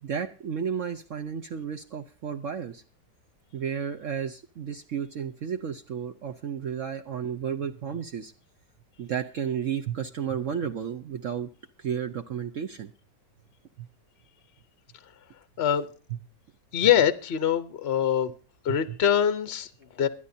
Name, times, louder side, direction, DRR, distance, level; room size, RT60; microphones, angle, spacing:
voice 1, 0.0-2.8 3.5-8.3 9.0-11.5 11.8-12.9 13.8-13.9 18.7-19.0, right 8 dB, 60° right, 6 dB, 0.9 m, -32 dB
voice 2, 16.7-18.3 18.6-20.1, left 9 dB, 50° left, 12 dB, 0.8 m, -24 dB
23.5 x 10.0 x 2.7 m, 0.35 s
omnidirectional pair, 1.9 m